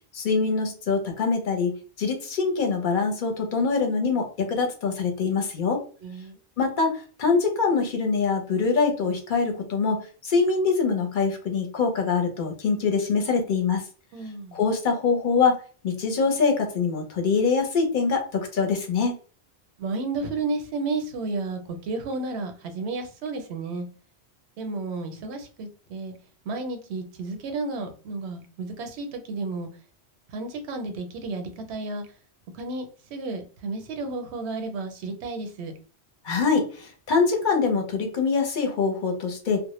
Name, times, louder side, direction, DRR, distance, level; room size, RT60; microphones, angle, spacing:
voice 1, 0.1-5.8 6.6-13.8 14.5-19.2 36.2-39.6, left 4 dB, 55° left, 3 dB, 0.6 m, -24 dB
voice 2, 6.0-6.4 14.1-14.6 19.8-23.9 24.6-26.1 26.5-29.7 30.3-32.1 32.6-35.7, right 3 dB, 80° right, 6 dB, 0.8 m, -32 dB
2.1 x 2.0 x 2.9 m, 0.39 s
omnidirectional pair, 1.1 m